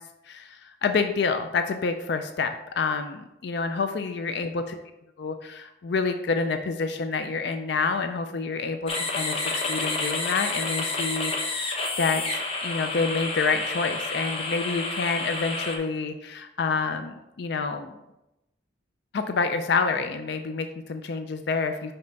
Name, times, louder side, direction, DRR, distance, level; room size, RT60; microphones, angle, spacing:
voice 1, 0.3-4.8 5.2-17.9 19.1-21.9, left 4 dB, 60° left, 8 dB, 0.4 m, -28 dB
sound 1, 8.9-15.8, left 3 dB, 30° left, 0.9 m, -29 dB
5.6 x 5.3 x 4.0 m, 0.90 s
head